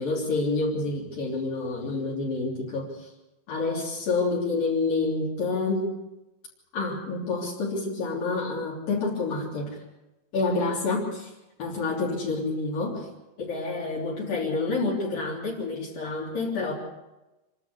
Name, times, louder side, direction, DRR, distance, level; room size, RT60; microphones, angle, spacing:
voice 1, 0.0-3.1 3.5-5.9 6.7-9.8 10.3-11.3 11.6-13.0 13.4-16.7, left 3 dB, 65° left, -4 dB, 5.1 m, -28 dB
26.5 x 13.0 x 8.3 m, 1.0 s
omnidirectional pair, 4.4 m